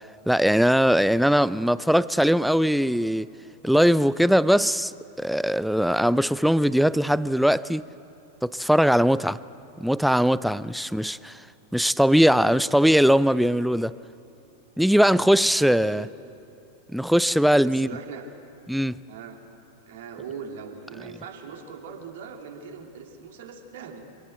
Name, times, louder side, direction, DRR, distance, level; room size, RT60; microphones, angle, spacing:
voice 1, 0.3-3.3 3.6-7.8 8.4-9.4 9.8-11.5 11.7-14.0 14.8-16.1 16.9-17.9 18.7-19.0, equal, ahead, 0.4 m, -20 dB
voice 2, 11.0-11.4 15.7-16.1 17.6-18.3 19.1-19.4 19.9-24.1, right 6 dB, 55° right, 2.8 m, -40 dB
25.5 x 17.0 x 8.2 m
figure-of-eight pair, 90°, 0 cm